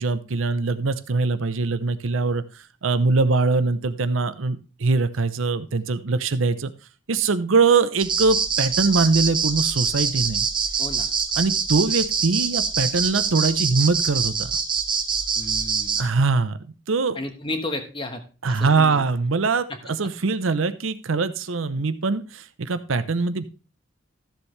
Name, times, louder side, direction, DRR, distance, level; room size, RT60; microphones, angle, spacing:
voice 1, 0.0-2.4 2.8-6.7 7.1-10.4 11.4-14.5 16.0-16.6 16.9-17.2 18.4-19.7 20.0-23.4, right 4 dB, 80° right, 13 dB, 0.7 m, -22 dB
sound 1, 8.0-16.0, right 6 dB, 25° right, 0.8 m, -24 dB
voice 2, 15.4-16.0 17.1-18.2 18.5-19.0, left 2 dB, 25° left, 6 dB, 1.2 m, -32 dB
13.0 x 7.1 x 3.2 m, 0.34 s
head